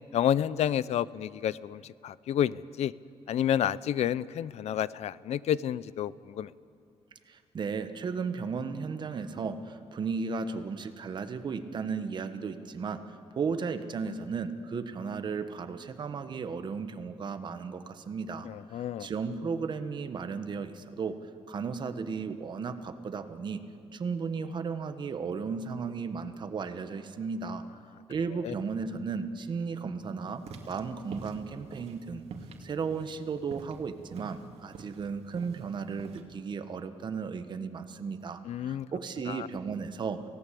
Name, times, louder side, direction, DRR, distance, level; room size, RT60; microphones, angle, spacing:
voice 1, 0.1-2.9 3.3-6.5 18.4-19.1 28.4-28.5 38.5-38.9 39.3-39.5, left 10 dB, 80° left, 19 dB, 0.6 m, -30 dB
voice 2, 7.3-18.5 18.7-21.2 21.5-23.6 23.9-27.6 28.1-32.2 32.6-40.2, right 5 dB, 45° right, 9 dB, 1.3 m, -35 dB
sound 1, 30.3-36.2, right 4 dB, 70° right, 2.3 m, -46 dB
28.5 x 17.5 x 8.4 m, 2.4 s
wide cardioid pair, 160°, 11 cm